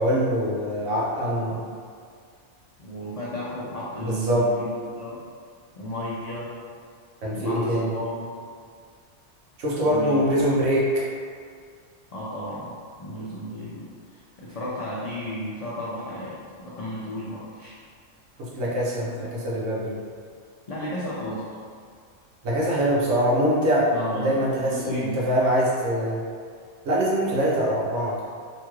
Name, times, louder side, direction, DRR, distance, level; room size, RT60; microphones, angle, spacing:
voice 1, 0.0-1.6 4.0-4.5 7.2-8.0 9.6-11.0 18.5-20.0 22.4-26.2 26.8-28.2, equal, 80° right, -5 dB, 1.1 m, -23 dB
voice 2, 1.4-1.8 2.8-5.2 5.7-6.5 7.3-8.4 9.8-10.3 12.1-17.9 19.0-19.1 20.7-21.6 23.9-25.2, equal, 80° left, -8 dB, 0.3 m, -34 dB
3.0 x 3.0 x 2.3 m, 2.1 s
omnidirectional pair, 1.3 m